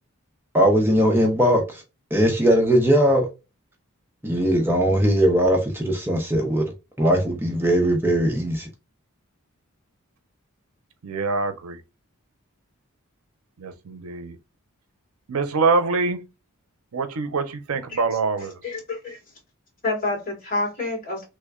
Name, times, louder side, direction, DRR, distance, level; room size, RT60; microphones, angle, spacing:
voice 1, 0.5-1.8 2.1-3.3 4.2-6.6 7.0-8.7, equal, 10° right, 0.7 m, -19 dB
voice 2, 11.0-11.8 13.6-14.4 15.3-16.2 16.9-18.6, right 4 dB, 80° right, 0.6 m, -24 dB
voice 3, 18.6-19.2 19.8-21.2, left 2 dB, 45° left, 2.1 m, -28 dB
3.3 x 2.1 x 3.5 m
head